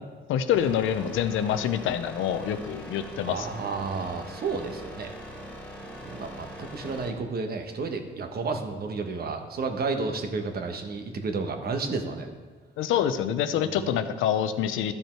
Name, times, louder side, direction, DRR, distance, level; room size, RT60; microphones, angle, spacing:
voice 1, 0.3-3.5 12.8-14.9, left 9 dB, 85° left, 11 dB, 0.6 m, -26 dB
sound 1, 0.5-7.1, equal, 10° left, 2.5 m, -42 dB
voice 2, 3.2-5.1 5.8-12.3 13.6-13.8, right 4 dB, 50° right, 6 dB, 1.2 m, -32 dB
12.0 x 5.4 x 4.5 m, 1.4 s
cardioid pair, 90°, 20 cm